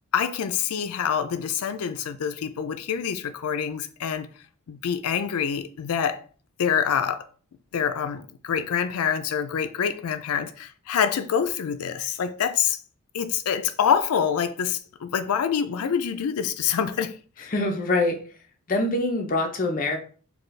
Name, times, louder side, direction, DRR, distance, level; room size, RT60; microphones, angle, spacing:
voice 1, 0.1-4.3 4.7-6.2 6.6-7.3 7.7-12.8 13.1-17.5, left 7 dB, 80° left, 0.4 m, -26 dB
voice 2, 17.5-18.2 18.7-20.0, left 2 dB, 40° left, 0.6 m, -24 dB
4.2 x 2.3 x 3.2 m
head